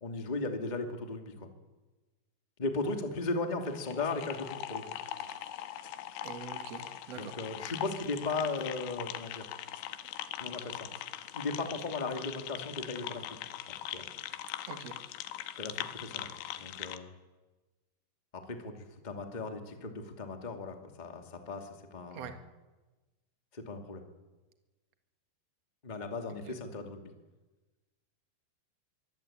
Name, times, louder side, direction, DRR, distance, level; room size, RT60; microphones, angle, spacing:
voice 1, 0.0-1.5 2.6-4.9 7.1-9.5 10.4-10.9 11.3-13.4 13.7-14.0 15.6-16.3 16.5-17.1 18.3-22.4 23.5-24.1 25.8-27.1, left 3 dB, 20° left, 5 dB, 1.2 m, -37 dB
sound 1, 3.6-17.0, left 12 dB, 85° left, 3.4 m, -41 dB
voice 2, 6.2-7.3 14.6-15.0 22.1-22.3 26.5-26.6, right 7 dB, 55° right, 7 dB, 1.9 m, -44 dB
23.5 x 17.0 x 8.8 m, 1.2 s
omnidirectional pair, 5.2 m